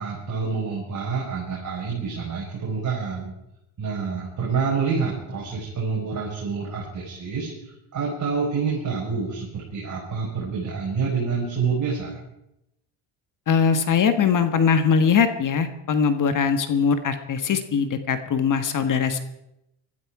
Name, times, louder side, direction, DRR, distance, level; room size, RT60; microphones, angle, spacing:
voice 1, 0.0-3.3 3.8-7.5 7.9-12.2, right 5 dB, 40° right, -4 dB, 5.2 m, -27 dB
voice 2, 13.5-19.2, left 6 dB, 45° left, 9 dB, 1.5 m, -21 dB
19.5 x 13.0 x 4.9 m, 0.85 s
cardioid pair, 105°, 45 cm